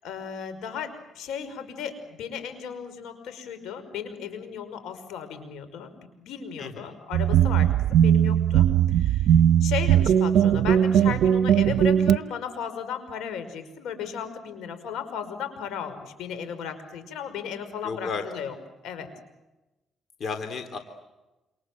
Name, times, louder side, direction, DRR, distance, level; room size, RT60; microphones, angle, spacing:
voice 1, 0.0-9.4 9.6-18.6 18.8-19.1, left 7 dB, 85° left, 10 dB, 5.6 m, -35 dB
voice 2, 6.6-7.0 17.8-18.2 20.2-20.8, left 5 dB, 55° left, 7 dB, 3.5 m, -33 dB
sound 1, 7.1-12.2, right 10 dB, 80° right, 0.9 m, -19 dB
28.0 x 27.5 x 7.6 m, 1.0 s
cardioid pair, 90°, 0 cm